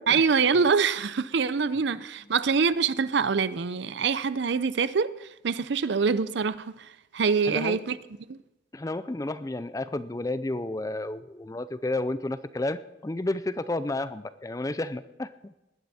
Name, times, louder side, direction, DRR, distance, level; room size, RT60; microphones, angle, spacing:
voice 1, 0.1-8.0 8.3-8.4, right 5 dB, 65° right, 0.5 m, -25 dB
voice 2, 7.5-7.8 8.7-15.5, left 2 dB, 15° left, 0.4 m, -31 dB
20.0 x 10.5 x 4.2 m
head